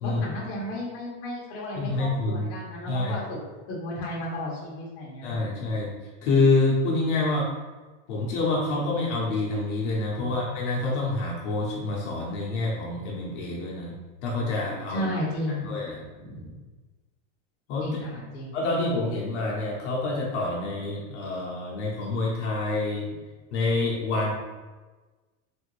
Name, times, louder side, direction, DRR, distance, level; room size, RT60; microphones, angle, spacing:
voice 1, 0.0-3.4 3.7-5.5 10.2-10.4 14.9-15.7 16.1-16.6 17.8-18.6, left 1 dB, 35° left, -5 dB, 0.9 m, -33 dB
voice 2, 1.8-2.5 2.9-3.2 5.2-5.9 6.2-7.5 8.1-13.9 14.2-15.1 15.6-16.0 17.7-17.9 18.5-23.0 23.5-24.3, left 2 dB, 65° left, -4 dB, 0.8 m, -27 dB
3.4 x 2.5 x 3.1 m, 1.3 s
supercardioid pair, 170°, 37 cm